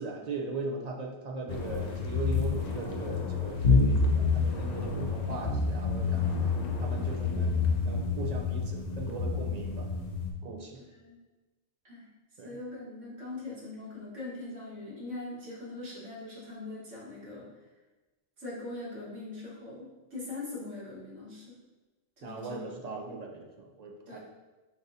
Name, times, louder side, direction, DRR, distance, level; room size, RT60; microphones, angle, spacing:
voice 1, 0.0-6.4 6.8-9.9 10.4-10.8 12.4-12.5 22.2-23.5 23.8-24.2, right 3 dB, 50° right, 1 dB, 0.5 m, -39 dB
sound 1, 1.5-10.3, left 4 dB, 50° left, 0.5 m, -28 dB
voice 2, 10.7-11.2 11.8-12.1 12.4-17.5 18.4-21.6 22.2-23.1 24.1-24.2, left 2 dB, 85° right, -7 dB, 2.0 m, -42 dB
7.3 x 2.7 x 2.7 m, 1.2 s
omnidirectional pair, 1.3 m